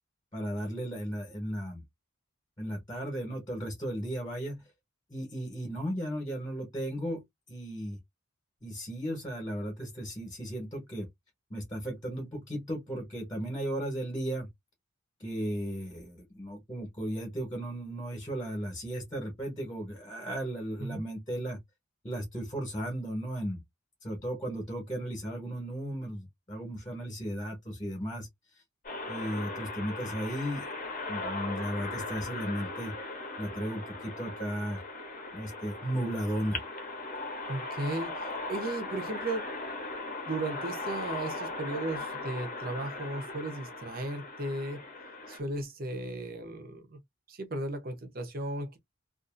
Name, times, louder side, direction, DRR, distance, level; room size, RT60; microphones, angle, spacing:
voice 1, 0.3-1.8 2.6-4.6 5.1-7.2 7.5-8.0 8.6-11.1 11.5-14.5 15.2-21.6 22.0-23.6 24.0-28.3 29.1-30.7 31.1-32.9 33.4-34.8 35.3-36.6, equal, 20° left, 1.1 m, -35 dB
sound 1, 28.8-45.4, left 3 dB, 40° left, 0.9 m, -38 dB
voice 2, 37.5-39.5 40.2-44.8 45.3-47.0 47.3-48.8, right 2 dB, 45° right, 0.7 m, -36 dB
2.6 x 2.5 x 2.5 m
head